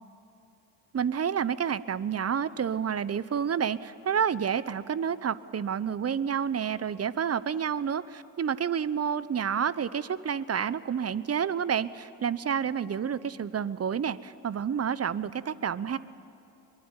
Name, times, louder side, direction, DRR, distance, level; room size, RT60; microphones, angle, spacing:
voice 1, 0.9-16.0, right 7 dB, 30° right, 17 dB, 0.9 m, -29 dB
23.0 x 22.0 x 9.1 m, 2.9 s
hypercardioid pair, 55°, 49 cm